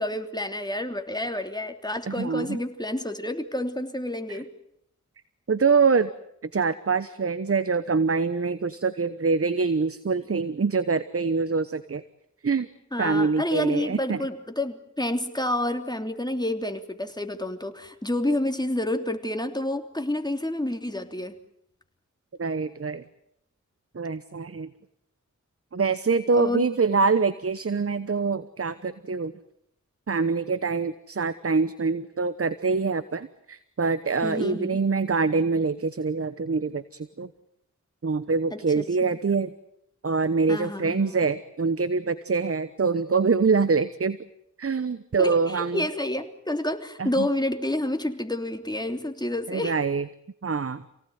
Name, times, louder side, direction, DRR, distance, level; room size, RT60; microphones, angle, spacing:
voice 1, 0.0-4.5 12.9-21.4 26.4-26.7 34.2-34.8 38.5-38.8 40.5-41.2 45.1-49.8, left 1 dB, 15° left, 6 dB, 3.1 m, -29 dB
voice 2, 2.1-2.6 4.3-4.4 5.5-6.1 6.5-12.0 12.4-12.7 13.0-14.2 22.4-23.0 23.9-24.7 25.7-29.3 30.1-37.3 38.0-39.5 40.0-44.2 44.6-45.9 47.0-47.3 49.5-50.1 50.4-50.8, right 4 dB, 50° right, 14 dB, 1.1 m, -25 dB
28.0 x 18.0 x 9.5 m, 0.76 s
cardioid pair, 50°, 30 cm